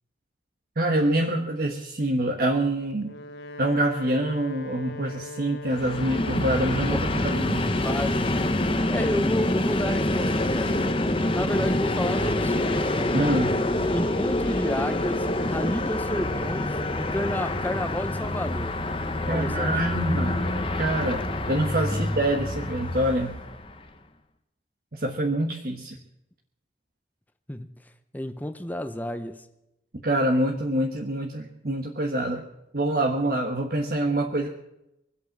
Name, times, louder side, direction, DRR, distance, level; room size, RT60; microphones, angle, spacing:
voice 1, 0.8-3.1 3.6-7.7 13.1-13.6 19.3-23.4 24.9-26.0 30.0-32.4 32.7-34.5, right 1 dB, 55° right, 1.3 m, -26 dB
Wind instrument woodwind instrument, 2.9-7.1, left 3 dB, 70° left, 1.1 m, -40 dB
Train, 5.7-23.8, left 1 dB, 30° left, 1.0 m, -26 dB
voice 2, 7.8-8.4 8.9-10.7 11.3-12.9 13.9-18.8 19.3-20.0 21.9-22.1 27.5-27.7 28.1-29.4, left 1 dB, 10° left, 0.7 m, -31 dB
23.5 x 8.4 x 6.0 m
head